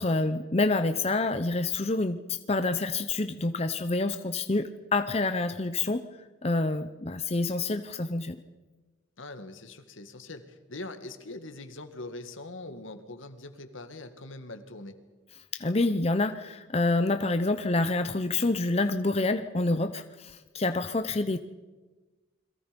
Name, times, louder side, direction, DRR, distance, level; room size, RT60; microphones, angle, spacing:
voice 1, 0.0-6.1 6.4-8.4 15.5-21.4, left 2 dB, 30° left, 9 dB, 0.7 m, -27 dB
voice 2, 9.2-15.0, left 2 dB, 80° left, 8 dB, 2.0 m, -42 dB
29.0 x 22.5 x 5.3 m, 1.2 s
head